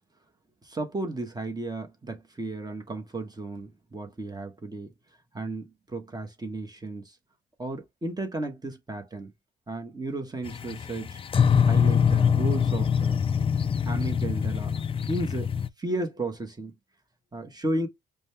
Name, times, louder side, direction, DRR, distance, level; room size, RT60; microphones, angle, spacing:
voice 1, 0.6-4.9 5.3-7.2 7.6-9.3 9.7-11.2 11.6-13.2 13.8-14.8 15.1-15.5 15.8-16.7 17.3-17.9, right 2 dB, 20° right, 1.2 m, -33 dB
sound 1, 10.5-15.7, left 7 dB, 30° left, 0.3 m, -24 dB
5.0 x 2.3 x 3.2 m
cardioid pair, 90°, 20 cm